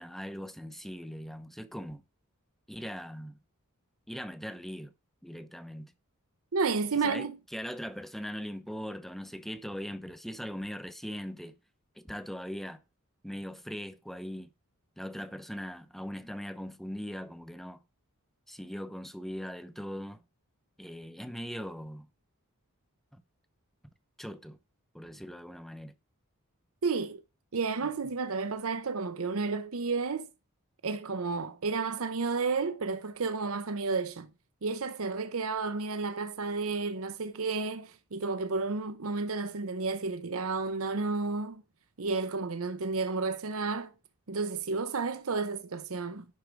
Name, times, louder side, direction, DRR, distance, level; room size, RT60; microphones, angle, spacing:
voice 1, 0.0-2.0 2.7-3.4 4.1-4.9 5.2-5.9 6.9-11.6 12.0-12.8 13.2-14.5 15.0-17.8 18.5-20.2 20.8-22.1 23.1-23.2 24.2-24.6 24.9-25.9 27.8-27.9, equal, ahead, 0.7 m, -40 dB
voice 2, 6.5-7.4 26.8-27.2 27.5-30.3 30.8-34.3 34.6-41.6 42.0-43.9 44.3-46.3, right 4 dB, 70° right, 0.8 m, -31 dB
11.0 x 4.6 x 5.2 m
head